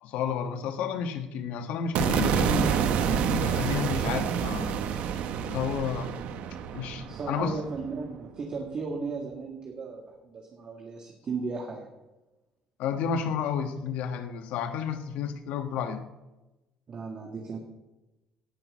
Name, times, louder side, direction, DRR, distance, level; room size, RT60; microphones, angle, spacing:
voice 1, 0.0-4.8 5.4-6.1 6.7-7.6 12.8-16.0, left 7 dB, 80° left, 7 dB, 1.3 m, -31 dB
sound 1, 2.0-8.2, right 8 dB, 70° right, 1.1 m, -28 dB
voice 2, 7.1-11.9 16.9-17.6, right 4 dB, 40° right, 1 dB, 1.9 m, -35 dB
17.5 x 6.2 x 6.2 m, 1.0 s
cardioid pair, 125°, 2 cm